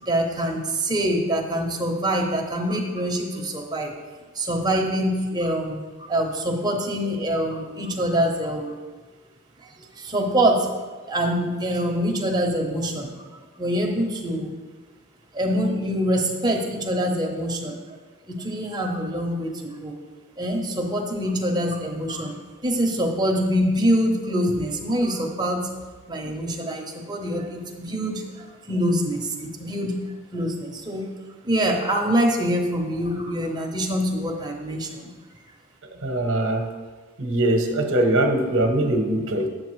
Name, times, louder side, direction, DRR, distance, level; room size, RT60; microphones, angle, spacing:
voice 1, 0.0-3.9 4.3-8.8 9.6-10.7 11.1-13.3 13.6-14.5 15.3-18.0 18.3-19.9 20.4-22.4 22.6-25.7 26.1-31.1 31.4-35.1, equal, 20° right, 1 dB, 0.9 m, -25 dB
voice 2, 36.0-36.7 37.2-39.5, right 1 dB, 65° right, 4 dB, 0.9 m, -22 dB
8.0 x 7.7 x 3.2 m, 1.4 s
head